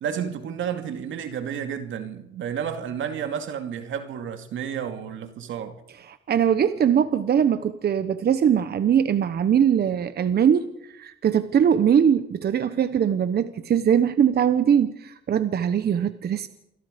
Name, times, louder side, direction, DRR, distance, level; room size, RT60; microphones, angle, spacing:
voice 1, 0.0-5.8, right 8 dB, 75° right, 2.3 m, -31 dB
voice 2, 6.1-16.5, right 8 dB, 55° right, 1.1 m, -21 dB
28.5 x 23.0 x 5.2 m
cardioid pair, 90°, 20 cm